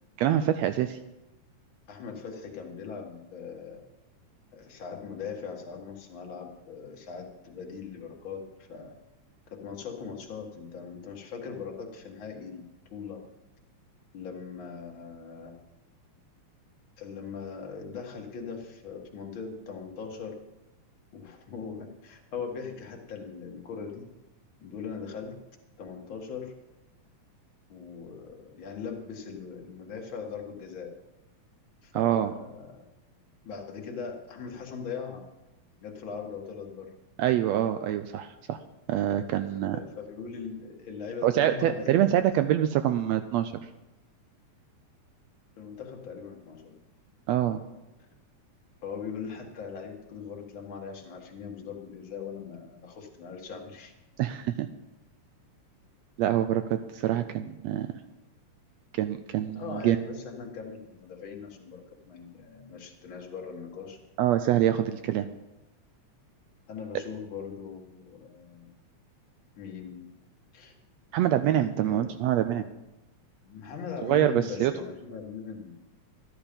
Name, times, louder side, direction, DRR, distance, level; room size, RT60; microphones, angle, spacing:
voice 1, 0.2-1.0 31.9-32.3 37.2-38.6 38.9-39.8 41.2-43.5 47.3-47.6 54.2-54.7 56.2-57.9 58.9-60.0 64.2-65.3 71.1-72.6 74.0-74.7, right 11 dB, 85° right, 10 dB, 1.5 m, -25 dB
voice 2, 1.9-3.8 4.5-8.9 9.5-12.6 12.9-13.2 14.1-15.6 17.0-20.3 21.1-24.0 24.6-25.4 25.8-26.5 27.7-30.9 31.8-32.8 33.4-35.2 35.8-36.9 39.7-42.1 45.6-46.8 48.8-53.9 59.6-61.8 62.1-64.0 66.7-68.7 69.6-70.1 70.5-70.8 71.8-72.2 73.4-75.7, left 6 dB, 45° left, 1 dB, 2.2 m, -40 dB
13.5 x 11.5 x 5.2 m, 0.98 s
omnidirectional pair, 3.6 m